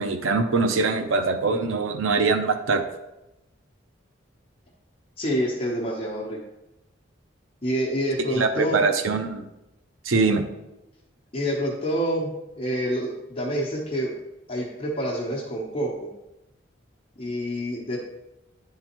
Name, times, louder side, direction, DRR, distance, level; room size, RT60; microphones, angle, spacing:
voice 1, 0.0-2.8 8.4-9.5 10.0-10.4, right 4 dB, 90° right, 6 dB, 0.6 m, -23 dB
voice 2, 5.2-6.4 7.6-8.8 11.3-14.1 14.5-16.1 17.2-18.0, equal, 30° left, -3 dB, 0.9 m, -27 dB
10.5 x 3.7 x 3.0 m, 0.94 s
head